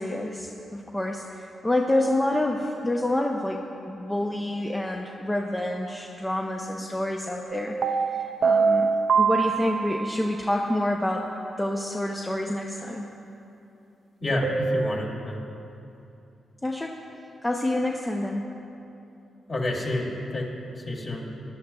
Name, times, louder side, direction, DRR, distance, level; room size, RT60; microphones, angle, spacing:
voice 1, 0.0-11.3 11.6-13.1 16.6-17.0 17.4-18.5, left 1 dB, 15° left, 0 dB, 0.6 m, -28 dB
sound 1, 7.5-10.3 14.4-14.9, right 5 dB, 55° right, 0.5 m, -24 dB
voice 2, 14.2-15.4 19.5-20.5 20.7-21.2, left 1 dB, 40° left, -3 dB, 2.7 m, -29 dB
21.5 x 11.0 x 2.3 m, 2.8 s
cardioid pair, 110°, 0 cm